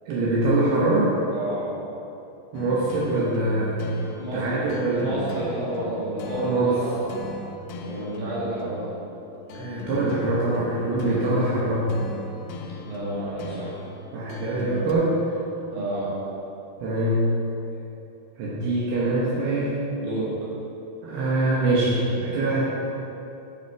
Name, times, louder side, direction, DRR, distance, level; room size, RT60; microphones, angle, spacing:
voice 1, 0.1-1.2 2.5-3.8 4.3-5.2 6.4-6.8 9.5-11.9 14.1-15.2 16.8-17.2 18.4-19.8 21.0-22.7, right 2 dB, 75° right, -7 dB, 3.1 m, -23 dB
voice 2, 1.3-1.7 4.2-4.6 5.0-6.9 7.8-8.9 12.8-13.7 15.7-16.1 20.0-20.3, right 1 dB, 50° right, -8 dB, 3.5 m, -30 dB
sound 1, 2.5-14.9, left 2 dB, 80° left, 2.4 m, -38 dB
8.8 x 6.9 x 4.6 m, 2.9 s
omnidirectional pair, 4.7 m